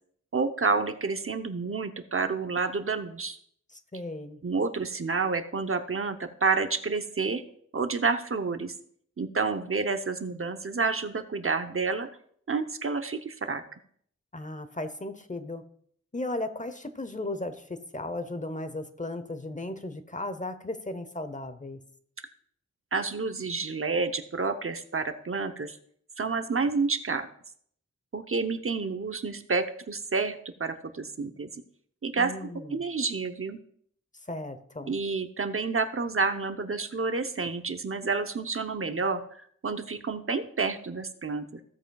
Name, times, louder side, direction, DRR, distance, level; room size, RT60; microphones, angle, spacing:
voice 1, 0.3-3.4 4.4-7.4 7.7-8.7 9.2-12.1 12.5-13.6 22.9-25.8 26.2-27.3 28.1-31.5 32.0-32.3 32.7-33.6 34.9-41.6, right 4 dB, 50° right, 8 dB, 0.8 m, -29 dB
voice 2, 3.7-4.4 14.3-15.6 16.1-21.8 32.2-32.8 34.3-34.9, left 2 dB, 25° left, 10 dB, 0.8 m, -36 dB
16.0 x 7.8 x 2.3 m, 0.63 s
wide cardioid pair, 80°, 29 cm